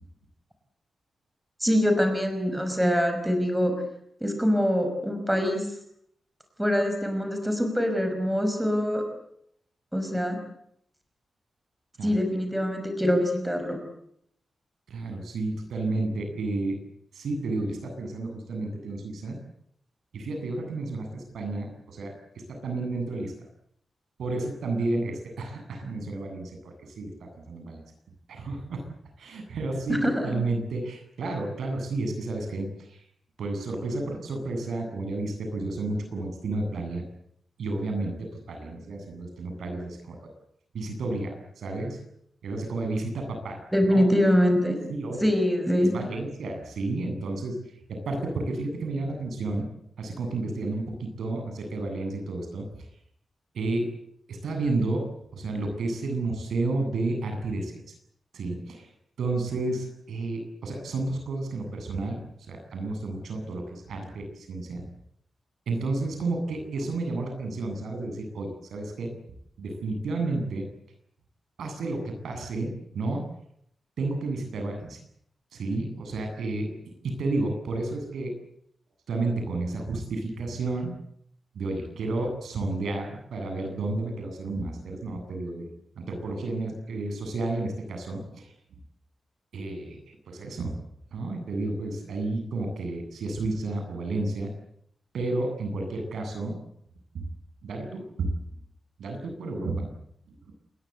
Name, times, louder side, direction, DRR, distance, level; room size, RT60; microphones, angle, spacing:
voice 1, 1.6-3.8 4.2-5.7 6.6-9.0 9.9-10.4 12.0-13.8 30.0-30.3 43.7-44.8 45.2-45.9, equal, 5° right, 5 dB, 5.6 m, -24 dB
voice 2, 14.9-16.8 17.1-19.4 20.1-22.1 22.5-23.3 24.2-27.8 28.3-28.9 29.2-33.0 33.4-37.0 37.6-40.2 40.7-42.0 42.4-43.6 43.9-44.0 44.9-45.3 45.8-47.6 48.0-49.7 50.0-52.7 53.5-53.9 54.3-55.1 55.3-57.8 58.3-58.9 59.2-62.2 62.5-64.8 65.7-69.1 69.6-70.6 71.6-72.7 72.9-73.2 74.0-75.0 75.5-76.7 77.0-78.3 79.1-80.9 81.5-85.7 86.0-88.5 89.5-90.8 91.1-94.5 95.1-96.6 97.1-97.3 97.6-98.4 99.0-99.9, right 2 dB, 90° right, 4 dB, 7.9 m, -31 dB
27.5 x 21.5 x 8.2 m, 0.72 s
wide cardioid pair, 170°, 0 cm